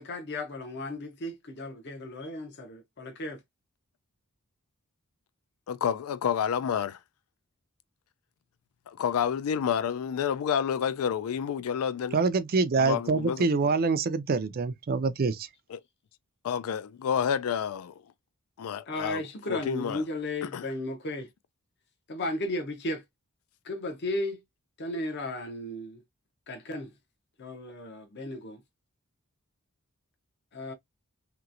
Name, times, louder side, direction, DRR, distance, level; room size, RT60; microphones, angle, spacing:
voice 1, 0.0-3.4 18.9-21.3 22.1-23.0 23.6-24.4 24.8-26.0 26.5-26.9 27.4-28.6 30.5-30.7, left 1 dB, 50° left, 0.8 m, -35 dB
voice 2, 5.7-7.0 8.9-12.2 12.8-13.5 15.7-15.8 16.4-17.9 18.6-19.2 19.5-20.0 20.5-20.6, left 8 dB, 70° left, 0.3 m, -29 dB
voice 3, 12.1-15.5, right 4 dB, 40° right, 0.4 m, -25 dB
3.0 x 2.9 x 2.5 m
head